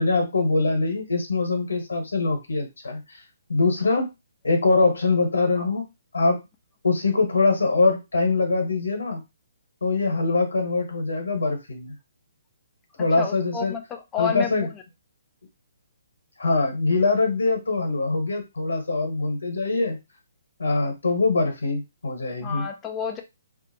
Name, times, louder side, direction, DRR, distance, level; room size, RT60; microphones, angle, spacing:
voice 1, 0.0-3.0 3.5-4.1 4.4-5.8 6.1-6.4 6.8-9.2 9.8-11.9 13.0-13.7 14.2-14.7 16.4-20.0 20.6-22.7, left 3 dB, 85° left, 1.2 m, -23 dB
voice 2, 13.2-14.8 22.4-23.2, left 7 dB, 15° left, 0.4 m, -30 dB
2.6 x 2.1 x 2.8 m
hypercardioid pair, 145°, 0 cm